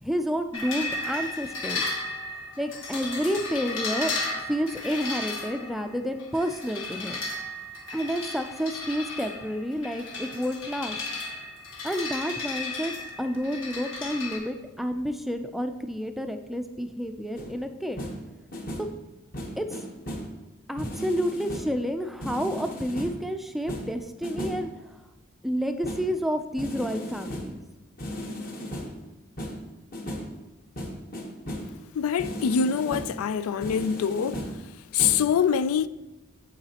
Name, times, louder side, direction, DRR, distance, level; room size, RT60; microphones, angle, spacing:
voice 1, 0.0-1.8 2.6-4.1 4.5-7.2 7.9-11.0 11.8-18.0 18.8-18.9 19.6-19.7 20.7-24.7 25.4-27.6, equal, ahead, 0.4 m, -30 dB
sound 1, 0.5-14.4, left 2 dB, 65° left, 1.5 m, -34 dB
sound 2, 17.3-17.6 18.0-18.3 18.5-19.0 19.3-20.4 20.8-21.8 22.2-23.2 23.7-24.7 25.8-26.2 26.6-27.6 28.0-29.0 29.4-30.4 30.8-31.8 32.2-33.2 33.6-34.7 35.0-35.2, equal, 40° left, 1.1 m, -36 dB
voice 2, 31.9-34.4 34.9-35.9, left 7 dB, 90° left, 0.3 m, -24 dB
8.8 x 7.8 x 2.9 m
head